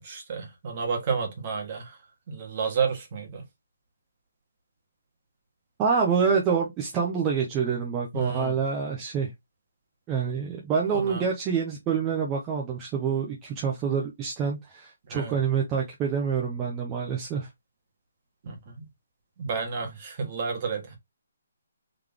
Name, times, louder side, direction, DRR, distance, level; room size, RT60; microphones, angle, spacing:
voice 1, 0.0-2.0 2.3-3.4 8.1-8.6 10.9-11.2 15.1-15.3 18.4-18.8 19.4-21.0, right 5 dB, 35° right, 1.6 m, -31 dB
voice 2, 5.8-9.3 10.1-17.5, right 6 dB, 15° right, 0.8 m, -27 dB
3.9 x 3.2 x 3.5 m
hypercardioid pair, 165°, 0 cm